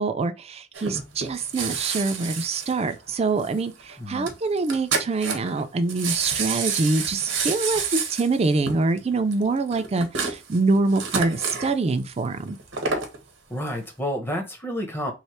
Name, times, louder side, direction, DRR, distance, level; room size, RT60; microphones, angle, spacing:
voice 1, 0.0-12.6, right 3 dB, 35° right, 0.4 m, -25 dB
sound 1, 0.7-3.5 3.8-3.9 4.3-4.4 4.6-5.6 5.9-11.7 12.5-13.2 13.7-13.8, right 5 dB, 85° right, 0.9 m, -29 dB
voice 2, 4.0-4.4 13.5-15.1, equal, 15° left, 0.8 m, -30 dB
3.2 x 2.1 x 4.2 m
head